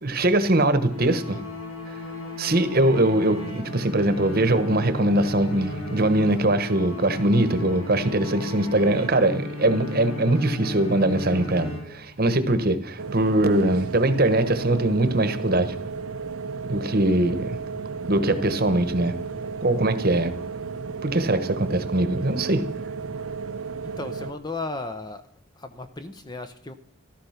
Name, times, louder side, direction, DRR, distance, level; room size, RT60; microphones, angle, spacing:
voice 1, 0.0-1.4 2.4-15.7 16.6-17.6 18.0-19.1 19.6-20.3 21.0-22.6, right 1 dB, 45° right, 11 dB, 1.2 m, -22 dB
sound 1, 0.9-12.4, left 1 dB, 80° left, 5.5 m, -35 dB
sound 2, 13.0-24.3, right 5 dB, 85° right, 0.9 m, -34 dB
voice 2, 23.8-25.2 25.6-26.7, left 3 dB, 20° left, 9 dB, 0.8 m, -35 dB
14.5 x 13.0 x 5.8 m, 0.65 s
head